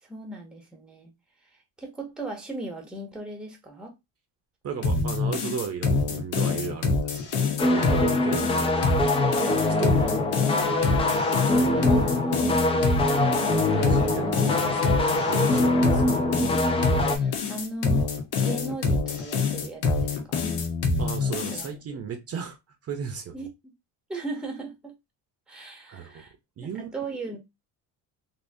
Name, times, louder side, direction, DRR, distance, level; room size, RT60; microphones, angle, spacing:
voice 1, 0.0-1.1 1.8-3.9 7.8-7.9 8.5-8.6 11.3-11.4 11.7-12.5 13.5-14.2 17.0-18.1 18.4-20.5 21.5-22.0 23.3-23.5 24.1-24.9 25.5-26.3 26.6-27.4, right 2 dB, ahead, 0.7 m, -37 dB
voice 2, 4.6-10.1 13.1-16.3 21.0-22.6 22.8-23.4 25.9-26.2 26.6-27.2, right 7 dB, 35° right, 0.7 m, -36 dB
sound 1, 4.8-21.7, left 4 dB, 75° left, 0.9 m, -26 dB
sound 2, 7.6-17.2, left 2 dB, 15° left, 0.3 m, -24 dB
3.5 x 2.6 x 2.6 m
cardioid pair, 150°, 40 cm